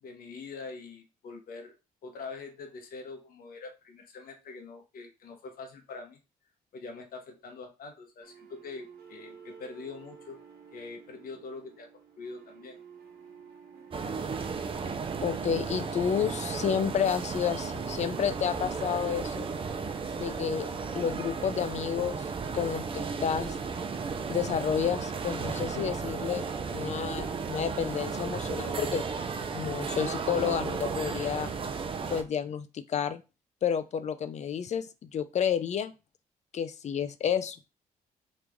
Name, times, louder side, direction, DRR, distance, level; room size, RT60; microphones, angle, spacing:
voice 1, 0.0-1.8 2.0-6.2 6.7-10.4 10.7-11.9 12.2-12.8, left 4 dB, 70° left, 4 dB, 1.0 m, -44 dB
sound 1, 8.2-16.2, right 7 dB, 80° right, 1.2 m, -53 dB
sound 2, 13.9-32.2, right 5 dB, 35° right, 0.5 m, -34 dB
voice 2, 15.2-19.5 20.2-20.7 20.9-22.2 22.5-23.6 24.3-29.0 29.5-31.5 32.1-33.2 33.6-34.9 35.1-35.9 36.5-37.6, left 8 dB, 50° left, 11 dB, 0.5 m, -30 dB
3.1 x 2.5 x 3.5 m, 0.29 s
cardioid pair, 85°, 16 cm